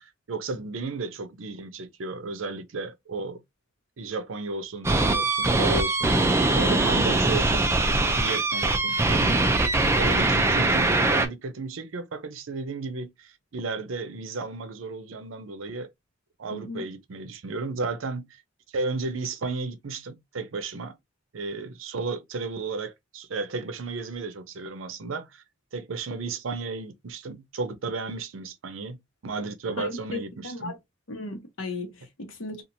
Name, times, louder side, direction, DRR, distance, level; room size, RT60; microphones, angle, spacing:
voice 1, 0.0-3.4 4.0-6.2 6.5-9.5 9.9-15.9 16.4-18.4 18.7-21.0 21.3-25.4 25.7-29.0 29.2-30.7, right 3 dB, 90° right, 0.6 m, -34 dB
sound 1, 4.8-11.3, right 2 dB, 15° right, 0.4 m, -22 dB
voice 2, 16.5-16.8 29.8-30.8 31.1-32.6, left 2 dB, 80° left, 0.9 m, -36 dB
2.9 x 2.4 x 2.6 m
head